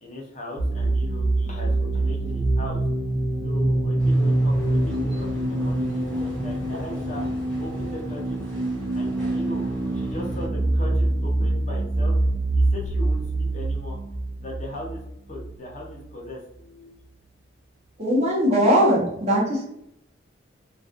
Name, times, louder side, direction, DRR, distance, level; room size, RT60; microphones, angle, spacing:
voice 1, 0.0-2.8 3.4-7.3 7.6-8.5 8.9-9.7 9.9-12.2 12.6-14.0 14.4-15.0 15.3-16.4, left 1 dB, 40° left, -2 dB, 0.5 m, -38 dB
sound 1, 0.6-16.1, right 2 dB, 70° right, 0.4 m, -25 dB
Motorcycle / Engine, 3.4-11.5, right 1 dB, 80° left, 0.7 m, -42 dB
sound 2, 4.0-10.5, equal, 5° left, 0.7 m, -39 dB
voice 2, 18.0-19.6, equal, 35° right, -5 dB, 0.8 m, -20 dB
2.4 x 2.3 x 2.4 m, 0.78 s
head